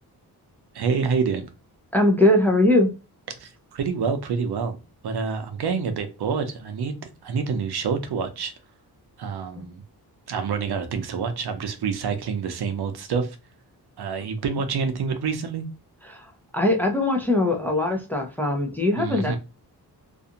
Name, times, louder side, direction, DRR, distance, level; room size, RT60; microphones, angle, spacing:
voice 1, 0.7-1.5 3.4-4.8 5.0-6.9 7.2-8.5 9.2-9.8 10.3-13.3 14.0-15.7 19.0-19.4, right 5 dB, 70° right, 0.6 m, -27 dB
voice 2, 1.9-2.9 16.0-19.4, left 1 dB, 5° left, 0.5 m, -21 dB
2.5 x 2.3 x 2.8 m
wide cardioid pair, 125°, 40 cm